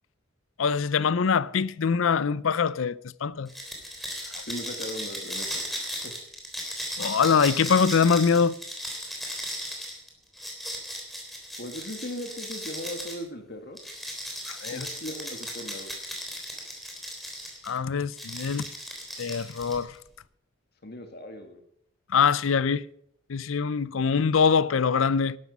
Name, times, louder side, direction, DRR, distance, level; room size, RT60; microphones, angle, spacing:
voice 1, 0.6-3.5 4.3-4.4 7.0-8.6 14.5-14.9 17.6-18.7 19.2-20.0 22.1-22.9 23.3-25.4, left 6 dB, 70° left, 0.5 m, -23 dB
sound 1, 3.5-13.2 13.8-17.7 18.1-20.0, equal, ahead, 3.4 m, -36 dB
voice 2, 4.5-6.1 11.6-13.8 14.7-15.9 20.8-21.6, left 1 dB, 50° left, 2.0 m, -38 dB
13.5 x 12.0 x 5.4 m
head